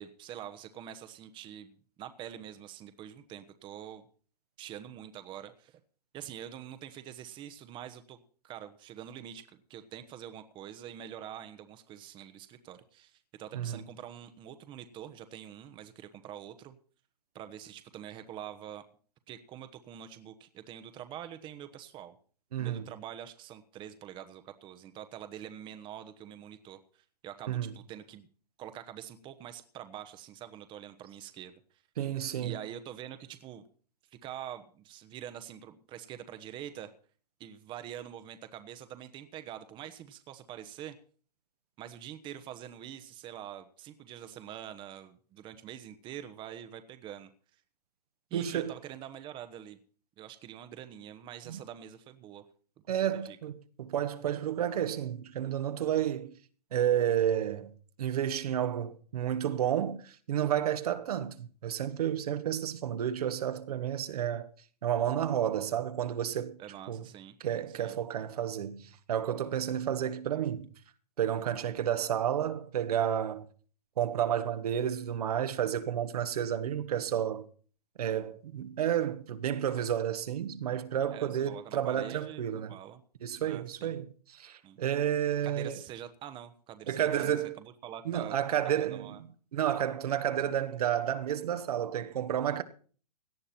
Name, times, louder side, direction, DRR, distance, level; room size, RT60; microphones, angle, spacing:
voice 1, 0.0-4.1 4.6-5.8 6.1-16.8 17.3-18.8 19.3-22.2 22.6-28.3 28.6-31.8 32.4-33.6 34.1-36.9 37.4-40.9 41.8-47.3 48.3-49.8 50.2-52.4 52.9-53.4 66.6-67.3 67.8-67.9 81.1-83.0 83.4-84.0 84.6-84.8 85.4-88.4 88.7-89.2 92.4-92.6, right 10 dB, 25° right, 1.1 m, -45 dB
voice 2, 22.5-22.9 27.5-27.7 32.0-32.6 48.3-48.7 51.5-51.6 52.9-56.3 56.7-57.7 58.0-64.5 64.8-66.6 66.9-67.0 67.4-70.7 71.2-73.5 74.0-77.5 78.0-82.8 83.2-85.8 86.9-87.6 88.0-92.6, right 10 dB, 70° right, 1.4 m, -31 dB
17.5 x 11.5 x 4.4 m
hypercardioid pair, 135°, 20 cm